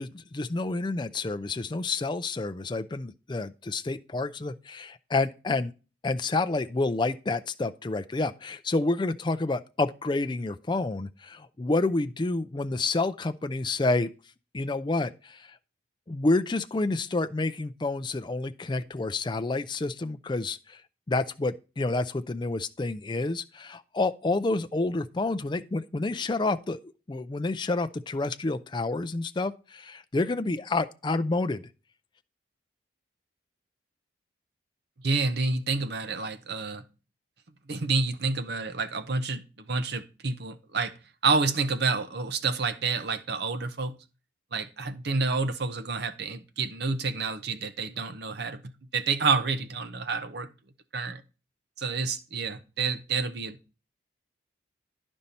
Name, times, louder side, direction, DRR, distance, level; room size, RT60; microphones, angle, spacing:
voice 1, 0.0-5.7 6.0-14.1 14.5-15.6 16.1-20.8 21.1-31.6, left 2 dB, 25° left, 0.4 m, -29 dB
voice 2, 35.0-36.8 37.7-40.9 41.2-43.9 44.5-48.6 48.9-50.5 50.9-51.2 51.8-53.6, right 4 dB, 55° right, 0.8 m, -29 dB
10.5 x 5.4 x 4.2 m
head